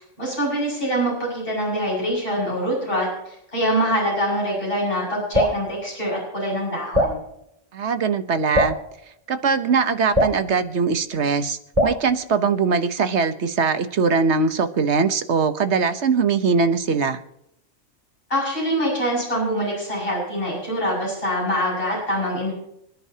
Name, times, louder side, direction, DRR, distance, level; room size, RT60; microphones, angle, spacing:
voice 1, 0.2-7.2 18.3-22.5, equal, 50° left, -4 dB, 7.4 m, -24 dB
Drip, 5.3-5.6 6.9-7.2 8.5-8.8 10.1-10.4 11.8-12.0, left 1 dB, 30° right, 2.5 m, -20 dB
voice 2, 7.7-8.8 9.3-17.2, right 5 dB, 70° right, 10 dB, 1.3 m, -21 dB
26.5 x 10.5 x 2.9 m, 0.77 s
omnidirectional pair, 1.2 m